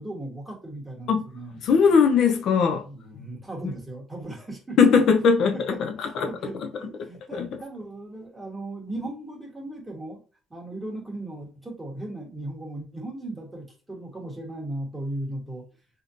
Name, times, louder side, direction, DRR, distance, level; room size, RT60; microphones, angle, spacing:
voice 1, 0.0-1.6 2.8-4.8 5.5-10.2 10.5-15.7, right 1 dB, 10° right, 1.1 m, -37 dB
voice 2, 1.6-2.9 3.2-3.3 3.6-3.7 4.8-6.3 6.6-6.7 7.3-7.5, left 6 dB, 60° left, 0.5 m, -20 dB
3.5 x 2.7 x 2.5 m
cardioid pair, 125°, 0 cm